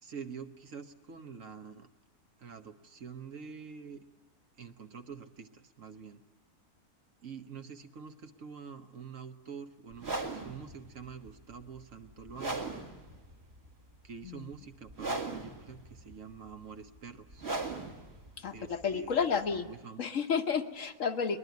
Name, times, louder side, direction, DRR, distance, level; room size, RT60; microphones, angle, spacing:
voice 1, 0.0-1.9 2.4-4.0 4.6-6.2 7.2-12.7 14.0-17.5 18.5-19.1 19.5-20.0, right 6 dB, 55° right, 7 dB, 1.4 m, -46 dB
sound 1, 9.9-19.8, right 3 dB, 40° right, 2.1 m, -40 dB
voice 2, 18.4-19.7 20.0-21.4, left 6 dB, 55° left, 7 dB, 1.3 m, -31 dB
22.5 x 20.5 x 9.4 m, 1.1 s
omnidirectional pair, 1.7 m